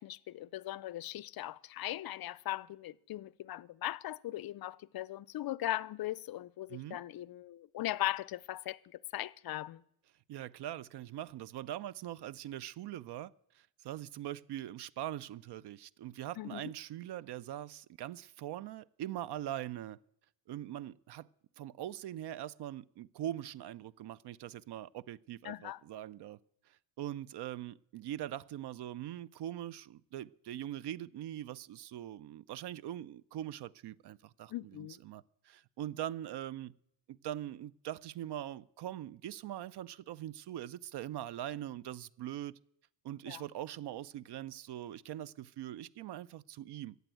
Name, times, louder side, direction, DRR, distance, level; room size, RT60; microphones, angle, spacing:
voice 1, 0.0-9.8 16.4-16.7 25.4-25.8 34.5-35.0 43.3-43.4, left 14 dB, 55° left, 0.5 m, -39 dB
voice 2, 10.3-20.0 20.5-21.3 21.6-26.4 26.7-36.7 37.1-42.5 43.0-47.0, right 12 dB, 60° right, 0.6 m, -42 dB
15.0 x 8.1 x 9.1 m
cardioid pair, 140°, 45 cm